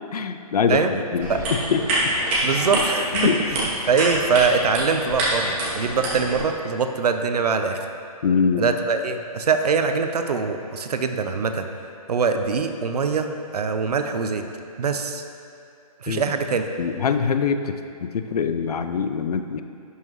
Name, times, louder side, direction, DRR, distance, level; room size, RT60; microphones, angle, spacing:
voice 1, 0.0-1.8 3.1-3.4 8.2-8.7 16.1-16.2 16.8-19.6, left 6 dB, 80° left, 9 dB, 0.5 m, -23 dB
sound 1, 1.2-6.4, right 1 dB, 20° right, 1.2 m, -26 dB
voice 2, 2.4-7.8 8.6-11.7 12.1-14.4 14.8-15.2 16.0-16.6, right 5 dB, 85° right, 7 dB, 0.7 m, -23 dB
11.0 x 5.6 x 3.1 m, 2.5 s
hypercardioid pair, 170°, 20 cm